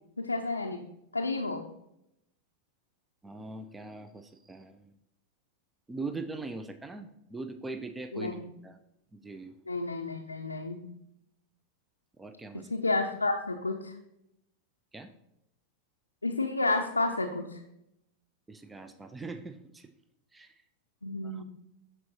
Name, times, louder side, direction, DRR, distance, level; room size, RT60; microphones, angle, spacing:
voice 1, 0.2-0.8 1.1-1.6 8.1-8.5 9.7-10.9 12.5-13.9 16.2-17.6 21.0-21.4, left 2 dB, 80° left, 2 dB, 0.5 m, -31 dB
voice 2, 3.2-4.9 5.9-8.4 8.6-8.8 9.1-9.5 12.2-12.7 14.9-15.1 18.5-19.9 20.3-20.5 21.3-21.4, right 3 dB, 10° right, 10 dB, 0.5 m, -41 dB
12.0 x 4.5 x 3.0 m, 0.83 s
figure-of-eight pair, 90°, 0 cm